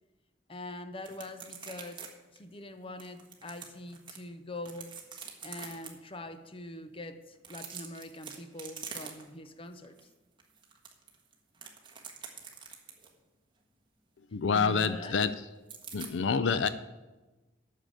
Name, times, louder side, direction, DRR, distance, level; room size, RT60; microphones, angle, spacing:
voice 1, 0.5-2.0 2.3-4.9 5.4-9.9 14.5-15.2, left 1 dB, 30° left, 0.8 m, -43 dB
sound 1, 1.0-2.1 2.4-2.5 3.0-4.2 4.6-5.9 7.3-9.5 9.8-10.0 10.4-13.1 15.7-16.1, right 6 dB, 25° right, 1.5 m, -45 dB
voice 2, 14.3-15.4 15.9-16.7, left 5 dB, 75° left, 0.5 m, -27 dB
9.1 x 6.7 x 8.7 m
head